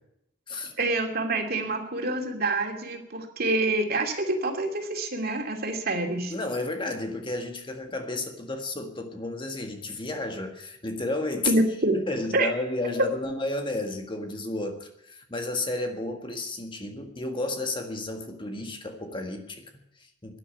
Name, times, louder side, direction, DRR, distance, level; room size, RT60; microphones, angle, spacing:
voice 1, 0.8-6.3 11.5-12.0 12.3-12.5, right 2 dB, 55° right, 3 dB, 2.7 m, -26 dB
voice 2, 6.3-11.5 12.1-20.4, left 2 dB, 25° left, 5 dB, 1.7 m, -32 dB
12.5 x 10.5 x 9.2 m, 0.81 s
head